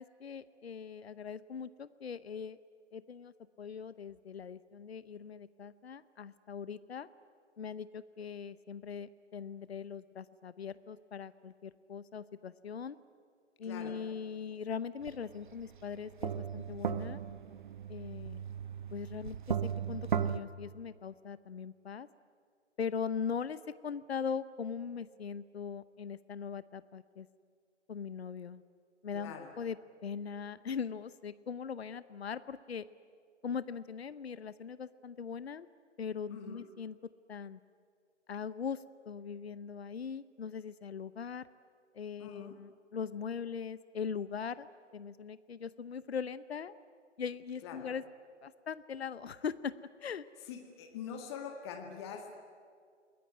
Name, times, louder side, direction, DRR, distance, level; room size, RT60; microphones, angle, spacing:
voice 1, 0.0-2.6 2.9-7.1 7.6-13.0 13.6-17.2 17.9-18.5 18.9-19.6 19.9-22.1 22.8-27.3 27.9-28.6 29.0-29.8 30.0-32.9 33.4-35.7 36.0-37.0 37.3-37.6 38.3-41.5 41.9-44.7 44.9-46.8 47.2-48.0 48.4-49.7 50.0-50.3, left 6 dB, 55° left, 16 dB, 0.9 m, -40 dB
voice 2, 13.6-14.0 29.1-29.5 36.3-36.7 42.2-42.6 47.6-47.9 50.5-52.3, left 7 dB, 20° left, 3 dB, 1.9 m, -44 dB
sound 1, 15.1-15.2 15.6-20.4, right 8 dB, 40° right, 0.9 m, -36 dB
29.5 x 21.0 x 9.5 m, 2.1 s
figure-of-eight pair, 145°, 36 cm